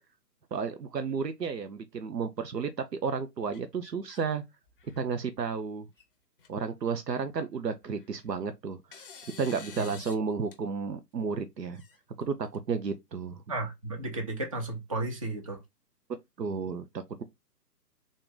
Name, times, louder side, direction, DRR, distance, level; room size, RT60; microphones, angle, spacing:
voice 1, 0.5-4.4 5.0-5.9 6.5-9.1 9.4-11.8 12.2-13.4 16.4-17.2, right 5 dB, 85° right, 0.6 m, -32 dB
sound 1, 3.5-4.3 4.7-5.2 6.0-6.1 6.4-6.5 7.8-8.4 8.9-10.2 10.5-10.6 11.7-12.6, left 5 dB, 35° left, 0.6 m, -49 dB
voice 2, 13.5-15.6, right 2 dB, 20° right, 0.6 m, -33 dB
3.6 x 2.5 x 3.7 m
figure-of-eight pair, 125°, 48 cm